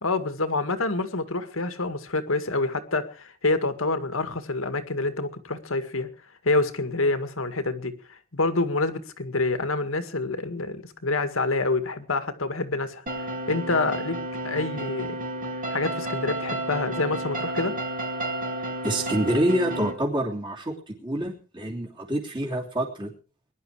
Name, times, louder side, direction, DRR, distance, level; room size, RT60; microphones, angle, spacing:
voice 1, 0.0-6.1 6.4-14.2 14.4-15.2 15.7-17.7, left 3 dB, 80° left, 9 dB, 2.0 m, -27 dB
sound 1, 13.1-19.9, right 1 dB, 40° right, 2.9 m, -31 dB
voice 2, 18.8-23.1, right 1 dB, 25° right, -1 dB, 3.2 m, -27 dB
21.5 x 11.0 x 4.9 m, 0.39 s
head